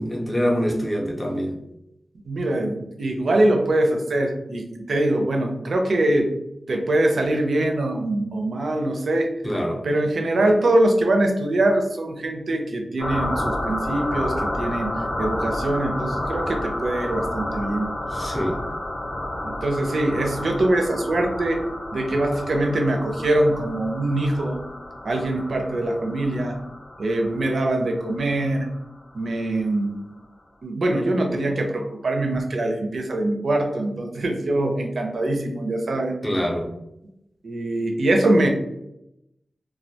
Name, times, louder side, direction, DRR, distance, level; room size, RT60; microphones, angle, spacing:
voice 1, 0.0-1.6 9.4-9.8 18.1-18.6 36.2-36.7, equal, 15° left, -1 dB, 0.5 m, -25 dB
voice 2, 2.3-6.3 6.7-9.3 9.8-14.9 15.2-17.9 19.4-21.6 21.9-24.6 25.0-26.6 27.0-28.7 29.1-29.9 30.6-36.2 37.4-38.5, right 1 dB, 70° right, 3 dB, 0.4 m, -23 dB
sound 1, 13.0-29.3, left 1 dB, 70° left, 0.7 m, -30 dB
2.2 x 2.1 x 2.7 m, 0.83 s
wide cardioid pair, 125°, 0 cm